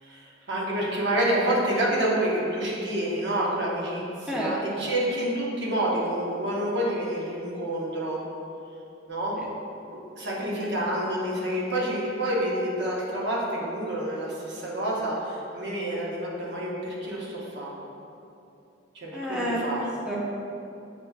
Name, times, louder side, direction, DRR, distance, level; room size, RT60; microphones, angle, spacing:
voice 1, 0.0-8.2 9.1-9.4 10.1-17.7 18.9-19.8, right 1 dB, 60° right, -4 dB, 0.8 m, -28 dB
voice 2, 4.3-4.8 9.4-9.5 10.4-10.7 19.1-20.2, equal, 5° right, -5 dB, 0.5 m, -31 dB
6.6 x 2.4 x 2.3 m, 2.7 s
head